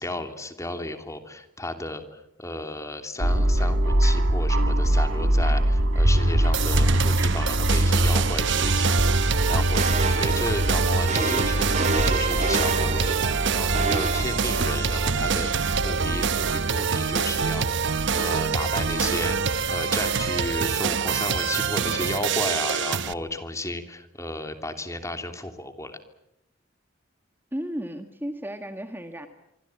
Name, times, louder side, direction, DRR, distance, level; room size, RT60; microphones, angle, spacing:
voice 1, 0.0-26.0, left 1 dB, 15° left, 7 dB, 2.9 m, -34 dB
sound 1, 3.2-20.7, right 1 dB, 90° right, 2.3 m, -25 dB
sound 2, 6.5-23.1, right 6 dB, 65° right, 1.0 m, -26 dB
sound 3, 9.7-15.1, right 3 dB, 35° right, 2.4 m, -30 dB
voice 2, 27.5-29.3, equal, 10° right, 7 dB, 1.7 m, -34 dB
25.5 x 25.0 x 8.9 m, 0.85 s
head